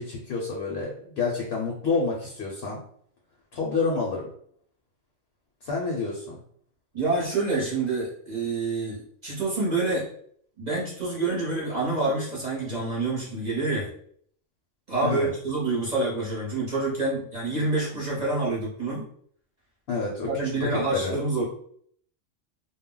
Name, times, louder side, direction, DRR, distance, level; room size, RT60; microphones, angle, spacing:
voice 1, 0.0-2.8 3.5-4.3 5.6-6.4 15.0-15.3 19.9-20.3 20.7-21.2, left 4 dB, 60° left, -2 dB, 0.8 m, -28 dB
voice 2, 6.9-10.1 10.6-13.9 14.9-19.0 20.2-21.4, right 3 dB, 40° right, -5 dB, 0.7 m, -27 dB
2.2 x 2.0 x 3.7 m, 0.62 s
omnidirectional pair, 1.3 m